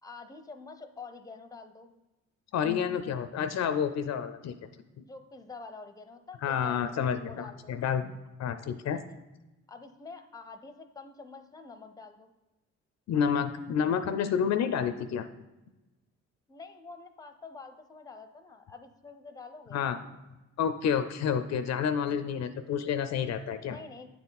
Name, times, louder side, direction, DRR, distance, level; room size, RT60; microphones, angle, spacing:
voice 1, 0.0-2.0 5.1-7.7 8.9-9.2 9.7-12.3 16.5-19.8 23.6-24.1, left 4 dB, 10° left, 8 dB, 0.6 m, -47 dB
voice 2, 2.5-4.5 6.4-8.1 8.4-9.0 13.1-15.3 19.7-20.0 20.6-23.8, left 7 dB, 60° left, 10 dB, 0.5 m, -29 dB
9.1 x 4.3 x 4.0 m, 1.1 s
cardioid pair, 90°, 30 cm